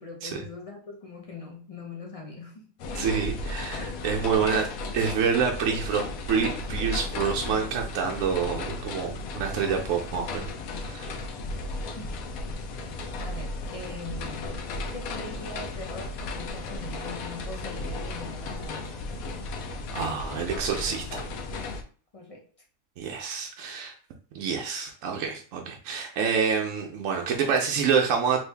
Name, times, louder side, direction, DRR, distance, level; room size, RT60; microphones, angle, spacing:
voice 1, 0.0-2.7 11.9-12.1 13.2-14.5 14.9-18.9 22.1-22.5, left 3 dB, 40° left, -1 dB, 0.5 m, -41 dB
sound 1, 2.8-21.8, left 2 dB, 80° left, 1.0 m, -35 dB
voice 2, 2.9-4.7 4.9-10.5 10.8-11.1 19.9-21.3 23.0-23.9 24.3-28.4, right 6 dB, 70° right, 1 dB, 0.9 m, -27 dB
3.1 x 2.6 x 3.3 m, 0.41 s
omnidirectional pair, 1.5 m